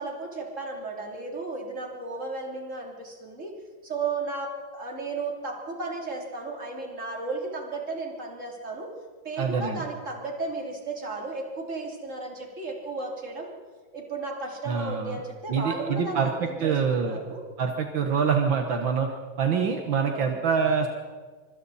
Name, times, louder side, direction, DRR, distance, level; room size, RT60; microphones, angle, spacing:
voice 1, 0.0-3.5 3.8-8.9 9.2-13.5 13.9-17.4 20.1-20.4, right 3 dB, 40° right, 0 dB, 3.7 m, -34 dB
voice 2, 9.4-9.8 14.7-15.2 15.5-17.2 17.6-19.1 19.4-20.9, right 6 dB, 75° right, 4 dB, 2.1 m, -25 dB
25.0 x 25.0 x 4.2 m, 1.5 s
omnidirectional pair, 2.1 m